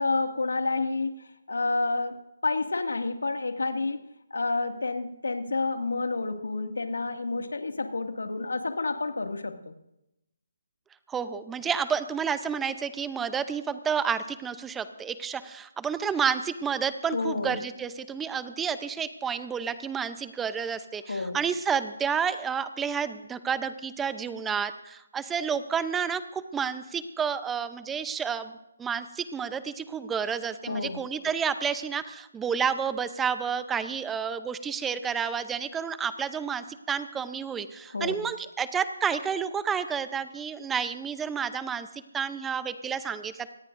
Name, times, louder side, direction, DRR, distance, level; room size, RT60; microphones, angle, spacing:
voice 1, 0.0-2.2 2.4-4.0 4.3-9.7 17.1-17.6 21.1-21.4 30.7-31.0 37.9-38.2, left 3 dB, 85° left, 5 dB, 2.1 m, -29 dB
voice 2, 11.1-28.5 28.8-41.9 42.1-43.5, right 7 dB, 10° right, 12 dB, 0.7 m, -30 dB
24.5 x 18.5 x 2.6 m, 0.88 s
hypercardioid pair, 160°, 0 cm